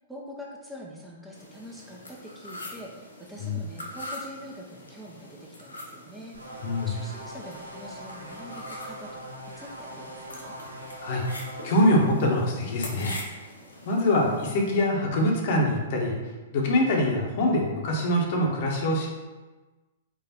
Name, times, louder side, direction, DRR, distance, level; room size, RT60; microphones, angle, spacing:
voice 1, 0.1-9.3 9.6-10.6, equal, 5° right, -3 dB, 0.6 m, -44 dB
sound 1, 1.3-14.8, left 1 dB, 85° left, 0.9 m, -43 dB
sound 2, 6.3-11.9, right 1 dB, 85° right, 0.8 m, -42 dB
voice 2, 11.6-13.4 13.8-16.1 16.5-19.1, left 1 dB, 50° left, -1 dB, 1.0 m, -24 dB
4.7 x 2.5 x 4.3 m, 1.2 s
figure-of-eight pair, 110°, 0 cm